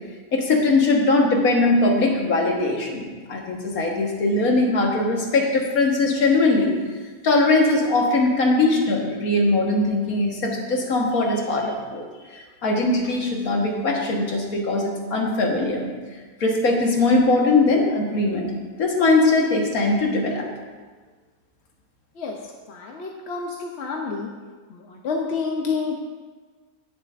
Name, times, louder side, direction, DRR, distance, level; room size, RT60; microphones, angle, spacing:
voice 1, 0.3-6.7 7.2-12.0 12.3-15.9 16.4-18.5 18.8-20.5, left 2 dB, 85° left, 0 dB, 1.8 m, -20 dB
voice 2, 22.7-24.3 24.7-26.0, left 4 dB, 55° left, 1 dB, 0.9 m, -28 dB
16.5 x 7.2 x 2.5 m, 1.4 s
omnidirectional pair, 1.5 m